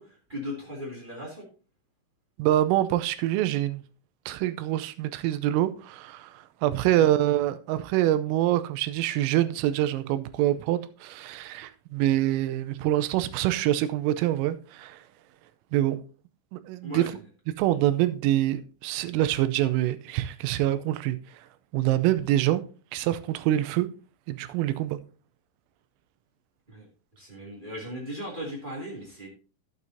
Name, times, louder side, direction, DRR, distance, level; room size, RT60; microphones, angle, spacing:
voice 1, 0.0-1.4 6.8-7.1 16.8-17.1 26.7-26.9 27.2-29.3, equal, 35° right, 0.8 m, -37 dB
voice 2, 2.4-3.8 4.3-15.0 15.7-16.0 16.5-17.1 17.6-21.2 21.7-22.6 22.9-23.9 24.3-25.0, right 13 dB, 85° right, 3.3 m, -25 dB
12.0 x 8.2 x 2.7 m
omnidirectional pair, 5.9 m